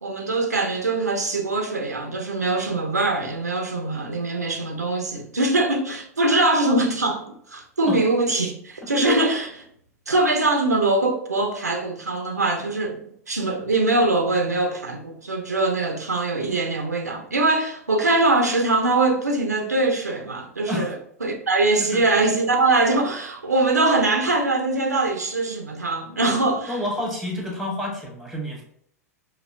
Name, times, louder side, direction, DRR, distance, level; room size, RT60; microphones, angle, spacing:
voice 1, 0.0-9.5 10.1-13.0 13.3-21.0 21.2-26.8, right 2 dB, 80° right, 0.7 m, -22 dB
voice 2, 26.7-28.6, left 1 dB, ahead, 1.3 m, -28 dB
5.1 x 2.7 x 2.6 m
figure-of-eight pair, 95°, 9 cm